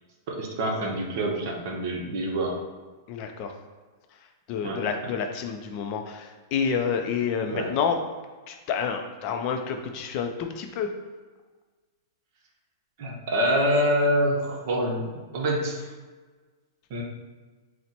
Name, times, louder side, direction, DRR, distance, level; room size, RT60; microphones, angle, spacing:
voice 1, 0.3-2.6 4.6-4.8 7.5-7.7 13.0-15.9 16.9-17.0, equal, 50° right, 0 dB, 0.8 m, -26 dB
voice 2, 3.1-3.6 4.1-8.0 8.5-10.9, left 6 dB, 35° left, 5 dB, 0.4 m, -29 dB
4.1 x 2.1 x 4.2 m, 1.4 s
hypercardioid pair, 150°, 2 cm